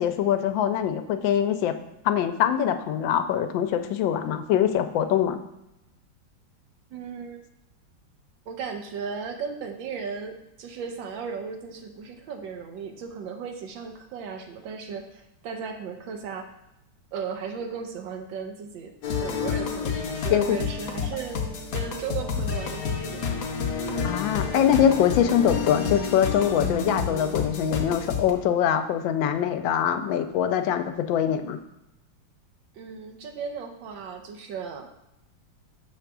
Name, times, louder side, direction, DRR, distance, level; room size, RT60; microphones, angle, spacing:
voice 1, 0.0-1.7 2.0-5.4 20.3-20.6 24.0-31.6, left 9 dB, 80° left, 9 dB, 1.3 m, -23 dB
voice 2, 6.9-7.4 8.5-16.5 17.1-18.9 19.2-21.4 21.7-23.3 32.7-34.9, right 6 dB, 80° right, 5 dB, 1.5 m, -36 dB
sound 1, 19.0-28.3, left 6 dB, 60° left, 1.0 m, -29 dB
6.5 x 3.4 x 6.0 m, 0.89 s
omnidirectional pair, 2.1 m